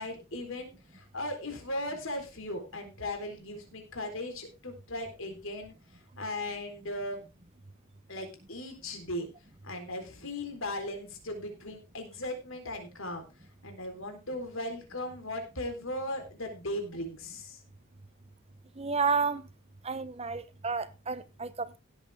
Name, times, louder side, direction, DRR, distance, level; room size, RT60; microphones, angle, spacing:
voice 1, 0.0-5.7 6.2-7.2 8.1-9.3 9.6-13.2 13.6-17.6, left 1 dB, 60° left, 4.0 m, -37 dB
voice 2, 18.8-19.4 19.8-21.8, right 5 dB, 30° right, 0.9 m, -31 dB
16.5 x 8.1 x 3.6 m
head